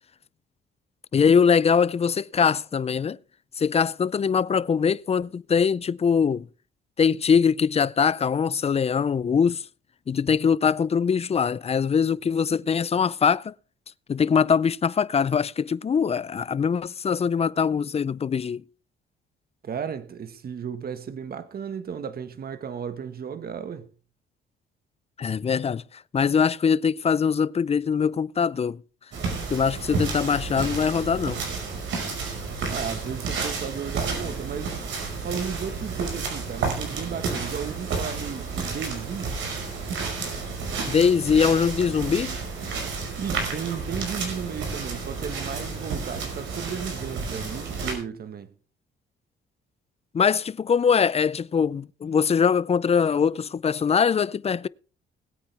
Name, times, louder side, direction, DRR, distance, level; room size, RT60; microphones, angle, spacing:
voice 1, 1.1-3.2 3.6-6.5 7.0-9.6 10.1-13.5 14.1-18.6 25.2-28.8 29.5-31.4 40.9-42.4 50.1-54.7, left 6 dB, 30° left, 0.5 m, -22 dB
voice 2, 19.6-23.9 32.6-34.8 35.2-39.4 43.2-48.5, right 7 dB, 50° right, 1.5 m, -34 dB
sound 1, 29.1-47.9, right 4 dB, 75° right, 5.4 m, -31 dB
20.5 x 8.8 x 3.4 m
cardioid pair, 90°, 20 cm